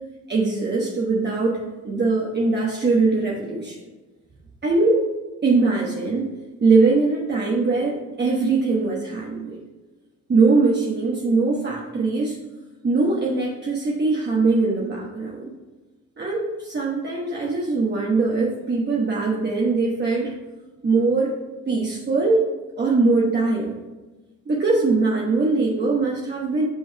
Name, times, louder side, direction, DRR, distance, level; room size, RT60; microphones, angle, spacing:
voice 1, 0.3-3.8 4.6-5.1 5.4-6.3 6.6-9.6 10.3-12.4 12.8-15.5 16.2-20.3 20.8-21.3 21.7-22.5 22.8-23.8 24.5-26.7, right 3 dB, 35° right, -3 dB, 1.2 m, -21 dB
5.6 x 5.5 x 4.7 m, 1.2 s
cardioid pair, 90°, 30 cm